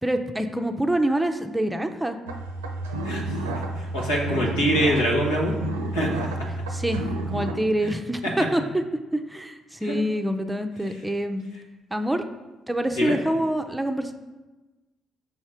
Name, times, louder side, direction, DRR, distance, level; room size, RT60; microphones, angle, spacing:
voice 1, 0.0-2.2 6.7-7.0 7.3-8.8 9.1-11.4 11.9-12.3 12.7-14.1, right 1 dB, 10° right, 6 dB, 0.6 m, -26 dB
sound 1, 2.3-7.5, right 2 dB, 85° right, 0.5 m, -30 dB
voice 2, 3.0-3.5 3.8-5.5 5.9-6.3 7.8-7.9 8.2-8.3 9.8-9.9 13.0-13.2, equal, 85° left, -2 dB, 1.2 m, -24 dB
5.6 x 4.2 x 4.9 m, 1.1 s
hypercardioid pair, 45°, 0 cm